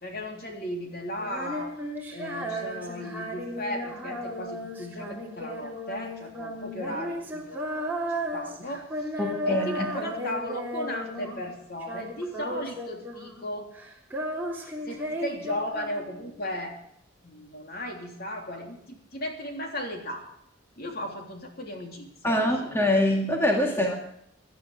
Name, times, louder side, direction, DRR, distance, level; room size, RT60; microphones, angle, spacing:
voice 1, 0.0-1.7 2.1-8.9 9.1-13.7 14.5-16.7 17.2-20.2 20.8-22.8 23.8-23.9, left 1 dB, 50° left, 2 dB, 3.4 m, -36 dB
Female singing, 1.2-11.5 11.8-13.5 13.7-16.4, equal, 10° right, 3.2 m, -35 dB
voice 2, 9.2-9.9 22.2-24.0, left 1 dB, 10° left, 1 dB, 2.1 m, -24 dB
18.0 x 11.5 x 4.8 m, 0.74 s
head